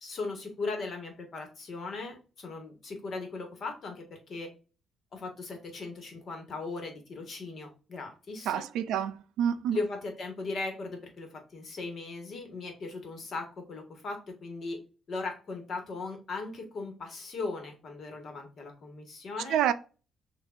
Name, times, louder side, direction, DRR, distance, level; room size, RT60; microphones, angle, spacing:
voice 1, 0.0-4.5 5.1-8.7 9.7-14.8 15.1-19.6, left 3 dB, 50° left, 1.4 m, -38 dB
voice 2, 8.5-9.8 19.5-19.7, right 9 dB, 90° right, 0.4 m, -28 dB
6.6 x 2.6 x 2.5 m
cardioid pair, 130°, 0 cm